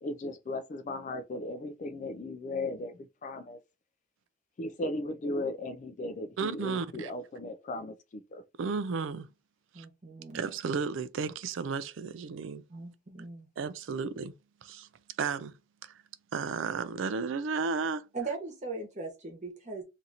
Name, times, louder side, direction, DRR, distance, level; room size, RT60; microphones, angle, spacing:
voice 1, 0.0-3.6 4.6-8.4, left 2 dB, 40° left, 0.3 m, -37 dB
voice 2, 6.4-7.1 8.6-9.3 9.7-9.9 10.3-12.6 13.6-14.3 14.6-14.9 15.2-15.5 15.8-15.9 16.3-18.1, right 5 dB, 65° right, 0.4 m, -33 dB
voice 3, 9.7-10.5 12.7-13.5 18.1-19.8, right 3 dB, 35° right, 1.1 m, -39 dB
2.8 x 2.5 x 4.1 m
head